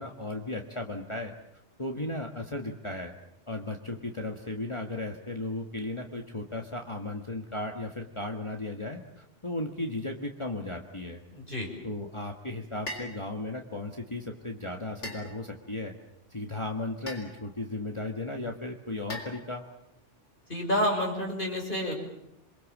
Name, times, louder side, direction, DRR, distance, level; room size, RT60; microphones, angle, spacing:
voice 1, 0.0-1.3 1.8-3.1 3.5-11.2 11.8-16.0 16.3-19.7, left 2 dB, 25° left, 2 dB, 1.7 m, -35 dB
voice 2, 11.3-11.7 20.5-22.0, equal, 45° left, 1 dB, 6.2 m, -29 dB
sound 1, 12.9-13.2 15.0-15.7 17.1-17.5 19.1-19.8, left 1 dB, 80° left, 4.3 m, -41 dB
28.5 x 22.5 x 7.4 m, 0.82 s
omnidirectional pair, 1.2 m